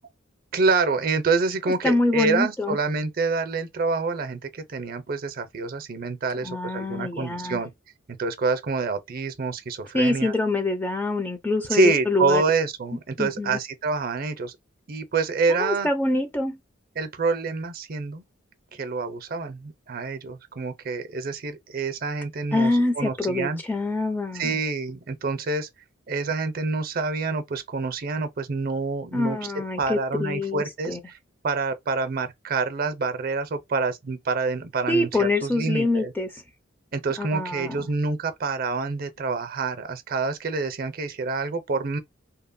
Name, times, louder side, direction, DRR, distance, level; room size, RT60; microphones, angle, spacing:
voice 1, 0.5-7.7 8.1-10.3 11.7-14.6 14.9-15.9 17.0-18.2 18.7-22.7 23.0-23.6 24.3-25.7 26.1-29.4 29.8-31.2 31.4-36.1 36.9-42.0, right 4 dB, 45° right, 0.5 m, -27 dB
voice 2, 1.8-2.8 6.4-7.6 9.9-12.4 13.2-13.6 15.5-16.6 22.5-24.6 29.1-31.0 34.9-36.4 37.2-37.9, left 2 dB, 10° left, 0.4 m, -25 dB
2.8 x 2.1 x 2.5 m
head